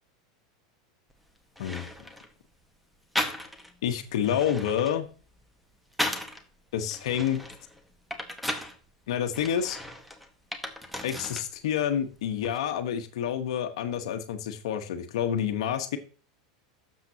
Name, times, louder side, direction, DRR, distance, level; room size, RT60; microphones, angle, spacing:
sound 1, 1.1-1.2 1.6-2.3 3.2-3.8 4.1-6.4 6.9-8.8 9.3-11.5 11.8-12.6, left 1 dB, ahead, 1.4 m, -35 dB
voice 1, 1.6-1.9 3.8-5.1 6.7-7.4 9.1-9.8 11.0-16.0, left 9 dB, 75° left, 8 dB, 1.2 m, -28 dB
12.0 x 7.5 x 2.8 m, 0.37 s
hypercardioid pair, 110°, 3 cm